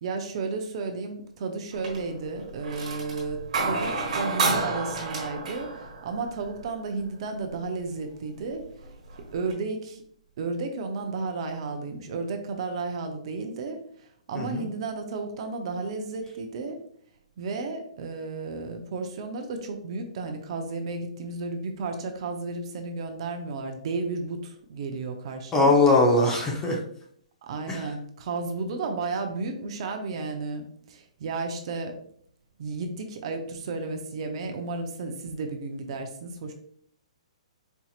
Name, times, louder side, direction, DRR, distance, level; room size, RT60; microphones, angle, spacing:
voice 1, 0.0-8.6 9.3-10.0 10.4-16.8 17.4-25.8 27.4-31.9 32.6-36.5, right 3 dB, 50° right, 5 dB, 0.6 m, -33 dB
sound 1, 1.7-2.2 2.5-6.7 8.2-8.3 8.8-9.5, right 3 dB, 70° right, 1.3 m, -30 dB
voice 2, 14.3-14.7 25.5-26.8 27.7-27.9, left 2 dB, 15° left, -1 dB, 0.8 m, -21 dB
4.5 x 2.7 x 2.4 m, 0.62 s
hypercardioid pair, 140°, 4 cm